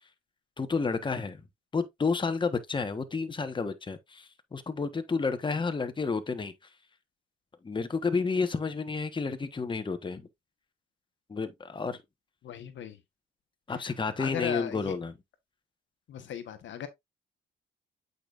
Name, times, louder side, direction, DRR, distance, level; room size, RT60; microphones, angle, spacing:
voice 1, 0.6-1.4 1.7-6.5 7.6-10.3 11.3-12.0 13.7-15.1, left 4 dB, 25° left, 1.2 m, -31 dB
voice 2, 12.4-13.0 13.7-14.9 16.1-16.9, left 10 dB, 70° left, 1.3 m, -37 dB
8.5 x 5.3 x 2.5 m
cardioid pair, 90°, 20 cm